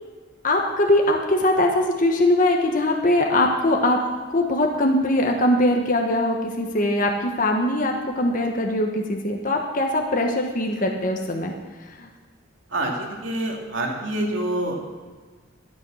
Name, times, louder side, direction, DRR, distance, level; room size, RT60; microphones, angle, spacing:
voice 1, 0.4-4.0 4.3-11.5 12.0-12.1, left 1 dB, 45° left, 2 dB, 1.2 m, -21 dB
voice 2, 12.7-14.7, right 1 dB, 80° right, 0 dB, 2.5 m, -26 dB
13.5 x 9.0 x 6.2 m, 1.5 s
head